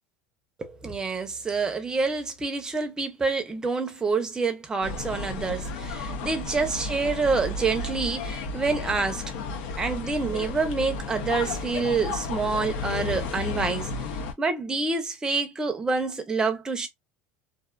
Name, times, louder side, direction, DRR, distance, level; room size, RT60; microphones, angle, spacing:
voice 1, 0.6-9.2 9.8-13.9 14.4-16.9, right 4 dB, 15° right, 0.6 m, -27 dB
sound 1, 4.8-14.3, left 3 dB, 75° left, 0.8 m, -33 dB
2.6 x 2.3 x 2.2 m
cardioid pair, 150°, 5 cm